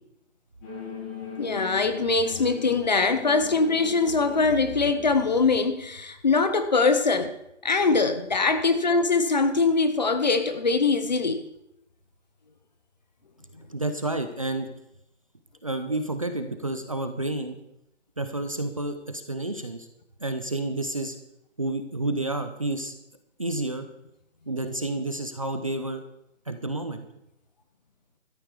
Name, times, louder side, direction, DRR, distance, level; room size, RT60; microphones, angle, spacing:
sound 1, 0.6-5.7, left 5 dB, 10° left, 1.7 m, -40 dB
voice 1, 1.4-7.3 7.6-11.4, left 4 dB, 35° left, 9 dB, 1.0 m, -22 dB
voice 2, 13.7-14.7 15.6-17.6 18.2-19.9 20.2-21.2 21.6-22.9 23.4-23.8 24.5-26.0 26.5-27.0, right 2 dB, 30° right, 8 dB, 0.7 m, -30 dB
13.0 x 12.0 x 4.8 m, 0.80 s
hypercardioid pair, 165°, 37 cm